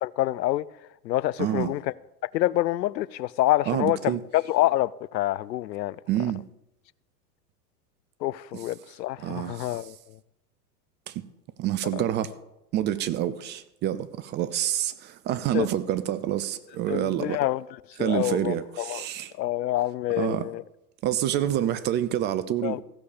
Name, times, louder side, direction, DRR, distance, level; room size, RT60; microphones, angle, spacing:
voice 1, 0.0-0.6 1.0-1.9 2.3-6.0 8.2-10.2 11.9-12.0 15.5-15.7 16.9-17.6 18.0-19.1 19.4-20.6 22.6-22.8, left 15 dB, 85° left, 0.6 m, -27 dB
voice 2, 1.4-1.7 3.7-4.2 6.1-6.4 9.2-9.9 11.1-11.2 11.6-12.3 12.7-17.4 18.0-19.3 20.2-20.5 21.0-22.8, right 12 dB, 25° right, 0.4 m, -27 dB
15.0 x 6.4 x 7.1 m
hypercardioid pair, 105°, 49 cm